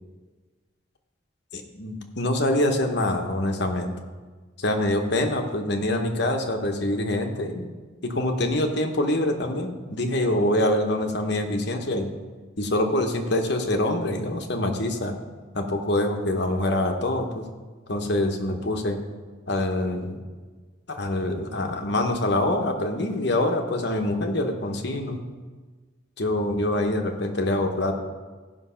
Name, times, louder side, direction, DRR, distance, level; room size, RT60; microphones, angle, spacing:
voice 1, 1.5-3.9 4.6-7.7 8.0-12.1 12.6-15.2 15.5-17.5 17.9-19.0 19.5-20.2 20.9-25.2 26.2-27.9, left 1 dB, 55° left, 4 dB, 1.0 m, -25 dB
14.0 x 5.4 x 5.6 m, 1.4 s
head